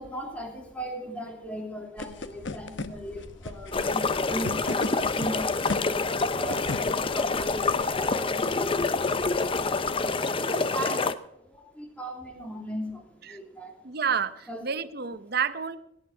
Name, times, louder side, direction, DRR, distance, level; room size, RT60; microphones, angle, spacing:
voice 1, 0.0-9.5 10.4-11.1 11.4-13.8 14.5-14.6, equal, 5° left, 2 dB, 2.8 m, -38 dB
sound 1, 2.0-10.0, left 2 dB, 70° left, 0.9 m, -39 dB
sound 2, 3.7-11.1, left 3 dB, 25° left, 0.6 m, -27 dB
voice 2, 13.8-15.8, right 7 dB, 55° right, 13 dB, 0.8 m, -30 dB
17.5 x 9.2 x 4.6 m, 0.81 s
head